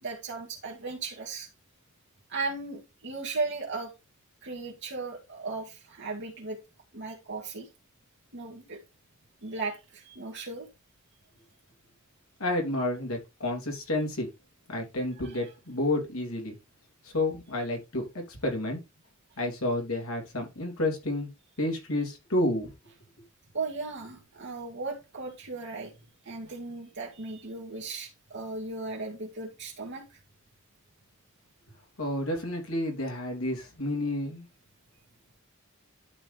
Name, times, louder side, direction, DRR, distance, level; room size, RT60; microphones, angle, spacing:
voice 1, 0.0-1.5 2.3-3.9 4.4-6.6 6.9-7.7 8.3-8.8 9.4-10.7 15.2-15.4 23.5-25.9 26.3-30.0, right 3 dB, 55° right, 2.2 m, -36 dB
voice 2, 12.4-14.3 14.7-16.5 17.0-18.8 19.4-21.3 21.6-22.7 32.0-34.4, left 1 dB, 75° left, 3.1 m, -30 dB
12.0 x 4.1 x 3.4 m
head